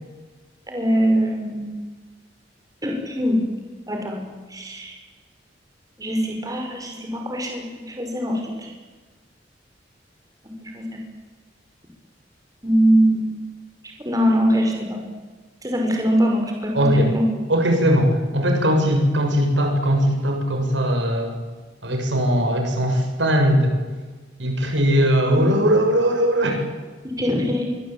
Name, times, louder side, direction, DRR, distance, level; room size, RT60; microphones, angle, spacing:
voice 1, 0.7-1.9 2.8-3.5 3.9-5.0 6.0-8.7 10.6-11.0 12.6-13.4 14.0-15.0 15.6-17.2 25.3-25.5 27.2-27.6, equal, 20° right, 2 dB, 5.8 m, -22 dB
voice 2, 16.7-17.1 17.5-21.4 21.8-23.8 24.4-26.6, equal, 85° right, 4 dB, 6.8 m, -19 dB
25.5 x 23.5 x 9.1 m, 1.3 s
head